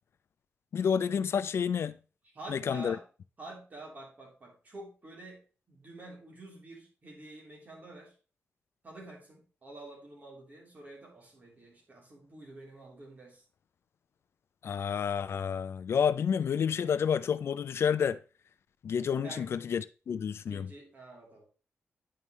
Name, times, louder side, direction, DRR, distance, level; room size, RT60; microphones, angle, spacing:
voice 1, 0.7-2.0 2.5-3.0 14.6-18.2 18.8-20.7, left 7 dB, 65° left, 0.4 m, -29 dB
voice 2, 2.2-3.0 3.4-5.4 5.7-8.2 8.8-13.4 19.2-19.5 20.5-21.5, right 2 dB, 40° right, 3.4 m, -48 dB
9.5 x 5.4 x 3.1 m
wide cardioid pair, 135°, 5 cm